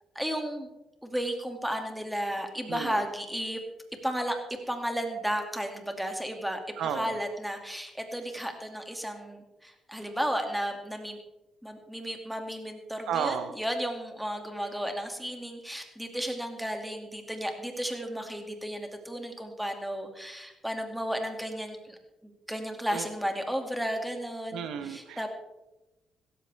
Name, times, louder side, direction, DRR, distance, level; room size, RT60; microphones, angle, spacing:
voice 1, 0.1-0.7 1.0-3.6 4.0-4.4 4.7-11.2 11.6-22.0 22.2-25.3, equal, 5° right, 4 dB, 2.4 m, -33 dB
voice 2, 2.7-3.0 6.8-7.2 13.1-13.5 22.9-23.0 24.5-25.3, right 8 dB, 80° right, 9 dB, 1.0 m, -32 dB
16.5 x 14.0 x 3.5 m, 1.0 s
cardioid pair, 90°, 0 cm